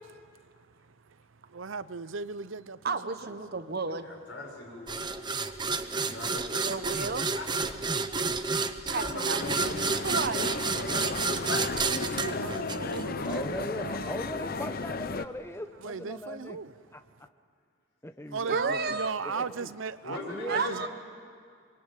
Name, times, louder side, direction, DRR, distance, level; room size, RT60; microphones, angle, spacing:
voice 1, 0.2-3.4 4.9-6.2 7.7-8.1 8.5-8.9 10.9-14.3 15.8-16.8 17.2-17.3 18.3-20.2 20.5-20.9, right 5 dB, 70° right, 0.7 m, -39 dB
voice 2, 2.8-4.1 6.6-7.3 8.9-9.4 9.8-10.5 18.5-19.1 20.3-20.9, right 4 dB, 50° right, 1.1 m, -32 dB
voice 3, 4.0-5.1 6.0-6.9 7.3-7.5 8.9-9.9 20.0-20.9, left 2 dB, 65° left, 6.6 m, -40 dB
voice 4, 4.9-5.3 7.9-8.0 8.4-8.5 11.0-11.2 13.3-16.6 16.9-17.0 18.0-19.0 19.2-19.7 20.3-20.6, left 1 dB, 15° left, 1.0 m, -40 dB
sound 1, 4.9-13.4, right 4 dB, 20° right, 0.9 m, -30 dB
sound 2, 9.4-15.3, left 3 dB, 45° left, 0.8 m, -34 dB
25.5 x 23.0 x 9.2 m
head